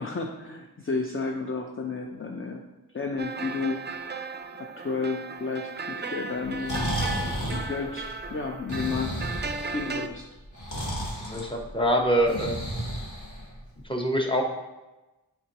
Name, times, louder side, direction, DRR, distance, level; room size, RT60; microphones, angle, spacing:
voice 1, 0.0-2.6 2.9-3.8 4.6-9.3 9.7-10.2, left 4 dB, 30° left, 3 dB, 0.6 m, -32 dB
sound 1, 3.2-10.1, right 4 dB, 25° right, 0.4 m, -36 dB
Breathing, 6.4-13.8, equal, 45° left, 1.9 m, -33 dB
voice 2, 11.2-12.7 13.8-14.4, equal, 15° left, 2 dB, 1.0 m, -25 dB
7.5 x 4.5 x 2.9 m, 1.1 s
wide cardioid pair, 40°, 40 cm